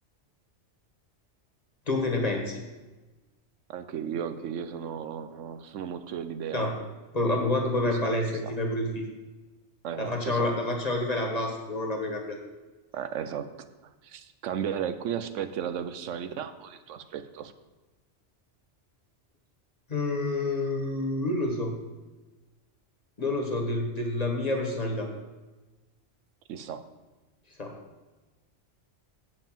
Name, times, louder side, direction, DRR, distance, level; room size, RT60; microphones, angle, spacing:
voice 1, 1.9-2.6 6.5-6.7 7.1-9.1 10.0-12.4 19.9-21.7 23.2-25.1 27.6-27.8, left 2 dB, 35° left, 1 dB, 1.4 m, -28 dB
voice 2, 3.7-6.7 7.9-8.2 8.4-8.6 9.8-10.5 12.9-13.5 14.0-17.5 26.5-26.8, right 8 dB, 90° right, 11 dB, 1.0 m, -35 dB
7.7 x 5.5 x 7.4 m, 1.2 s
omnidirectional pair, 1.2 m